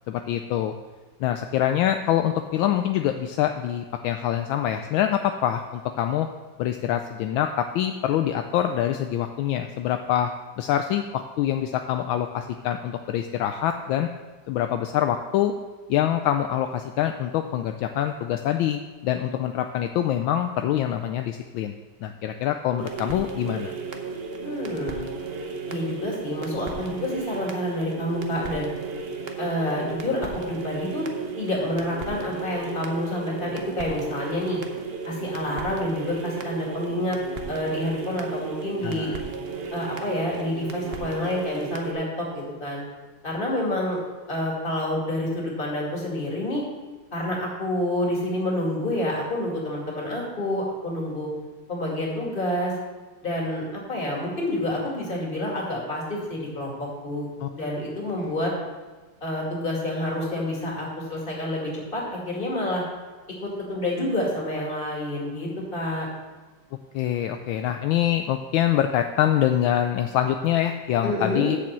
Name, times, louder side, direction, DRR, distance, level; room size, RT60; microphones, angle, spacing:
voice 1, 0.1-0.7 1.2-6.3 6.6-10.3 10.6-14.1 14.5-15.5 15.9-21.7 22.0-23.7 38.8-39.2 57.4-57.5 66.9-71.6, left 11 dB, 80° left, 6 dB, 1.3 m, -25 dB
sound 1, 22.8-41.9, right 4 dB, 50° right, 0.7 m, -34 dB
voice 2, 24.4-25.0 25.7-28.7 29.4-31.1 31.4-34.6 35.0-37.2 37.5-39.1 39.7-42.8 43.2-44.0 44.3-46.6 47.1-51.3 51.7-52.7 53.2-57.3 57.6-58.5 59.2-62.8 63.4-66.1 71.0-71.5, left 1 dB, 25° left, -3 dB, 2.4 m, -28 dB
7.4 x 6.9 x 7.3 m, 1.3 s
omnidirectional pair, 2.2 m